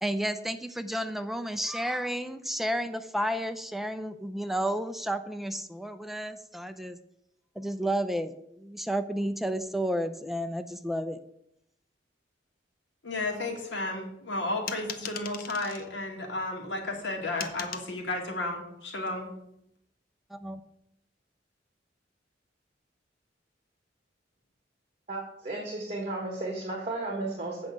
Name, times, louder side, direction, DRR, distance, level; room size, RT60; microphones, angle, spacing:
voice 1, 0.0-7.0 7.6-11.2 20.3-20.6, equal, ahead, 9 dB, 0.5 m, -31 dB
voice 2, 13.0-19.3, left 2 dB, 85° left, 1 dB, 2.2 m, -33 dB
sound 1, 14.7-15.9 17.4-17.9, left 6 dB, 50° left, 0.9 m, -38 dB
voice 3, 25.1-27.7, right 2 dB, 35° right, -1 dB, 1.8 m, -34 dB
8.0 x 5.3 x 7.3 m, 0.77 s
head